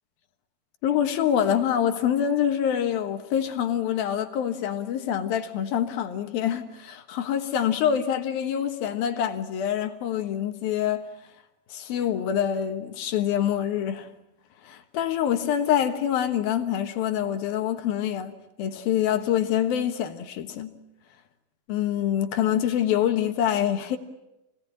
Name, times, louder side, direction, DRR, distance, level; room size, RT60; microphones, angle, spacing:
voice 1, 0.8-11.1 11.7-14.1 14.6-18.3 18.6-20.7 21.7-24.0, left 9 dB, 70° left, 2.9 m, -25 dB
27.5 x 19.0 x 9.7 m
omnidirectional pair, 4.6 m